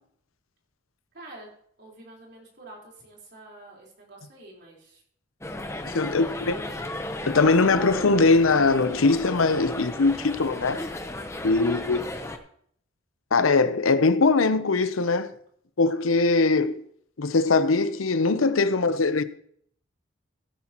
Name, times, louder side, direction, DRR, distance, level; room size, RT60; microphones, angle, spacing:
voice 1, 1.1-1.5 1.8-5.0 5.7-6.8 11.3-11.7, right 1 dB, 55° right, 4.2 m, -48 dB
sound 1, 5.4-12.4, left 1 dB, 15° left, 0.8 m, -35 dB
voice 2, 5.8-6.5 7.3-10.8 11.4-12.0 13.3-15.3 15.8-16.8 17.2-19.2, left 3 dB, 85° left, 0.8 m, -21 dB
15.5 x 9.8 x 3.0 m
head